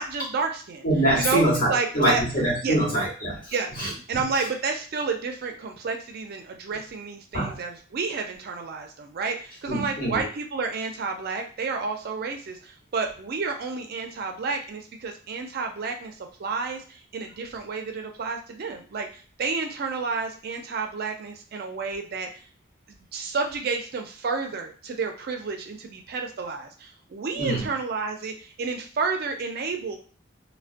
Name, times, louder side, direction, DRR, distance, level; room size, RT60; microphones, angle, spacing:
voice 1, 0.0-0.9 1.1-1.4 1.7-2.2 2.6-2.8 3.5-3.7 4.1-22.3 22.9-30.0, right 4 dB, 55° right, 4 dB, 0.4 m, -30 dB
voice 2, 0.8-3.4 3.8-3.9 7.3-7.5 9.7-10.2 27.4-27.6, right 1 dB, 50° left, -4 dB, 1.1 m, -24 dB
2.3 x 2.1 x 2.5 m, 0.39 s
head